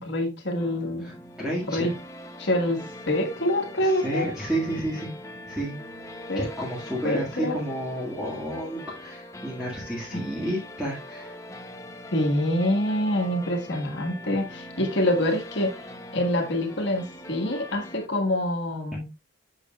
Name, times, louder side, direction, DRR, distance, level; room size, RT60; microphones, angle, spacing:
voice 1, 0.0-1.1 1.7-1.9 2.4-4.3 6.3-6.5 7.0-7.6 10.1-10.2 12.1-15.8 16.1-19.1, left 1 dB, 55° left, 1.5 m, -26 dB
sound 1, 0.6-18.1, left 1 dB, 15° left, 0.7 m, -42 dB
voice 2, 1.4-1.9 4.0-5.1 5.5-5.8 6.4-11.3, right 1 dB, 5° right, 1.8 m, -31 dB
7.0 x 6.5 x 2.3 m
head